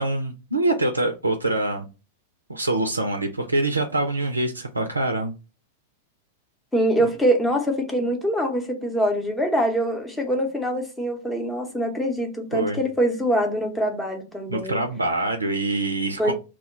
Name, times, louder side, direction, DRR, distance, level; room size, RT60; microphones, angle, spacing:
voice 1, 0.0-1.9 2.5-5.3 12.5-12.8 14.5-16.3, right 2 dB, 85° right, 0.4 m, -25 dB
voice 2, 6.7-14.8 16.2-16.3, equal, 5° left, 0.7 m, -24 dB
2.2 x 2.1 x 3.8 m
figure-of-eight pair, 95°, 0 cm